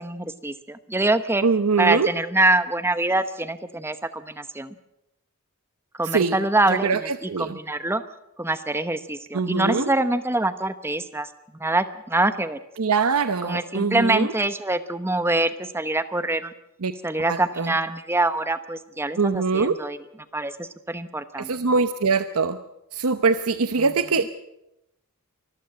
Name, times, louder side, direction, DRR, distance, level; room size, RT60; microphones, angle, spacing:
voice 1, 0.0-1.4 1.8-4.7 5.9-8.0 8.4-11.3 11.6-12.6 13.4-16.5 17.0-20.0 20.3-21.5, right 2 dB, 10° right, 12 dB, 0.9 m, -24 dB
voice 2, 1.4-2.1 6.0-6.4 6.7-7.6 9.3-9.9 12.8-14.3 16.8-16.9 17.3-17.8 19.2-19.8 21.4-22.6 22.9-24.3, right 4 dB, 85° right, 11 dB, 0.8 m, -23 dB
24.0 x 14.0 x 7.7 m, 0.88 s
head